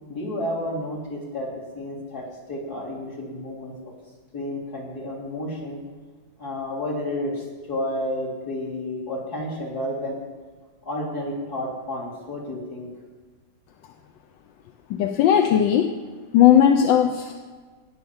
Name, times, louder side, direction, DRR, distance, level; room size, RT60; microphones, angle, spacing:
voice 1, 0.1-3.9 4.3-5.8 6.4-10.2 10.8-12.9, left 1 dB, 55° left, -3 dB, 3.6 m, -31 dB
voice 2, 14.9-15.9 16.3-17.3, left 9 dB, 85° left, 6 dB, 1.5 m, -17 dB
18.5 x 6.3 x 7.1 m, 1.4 s
omnidirectional pair, 2.0 m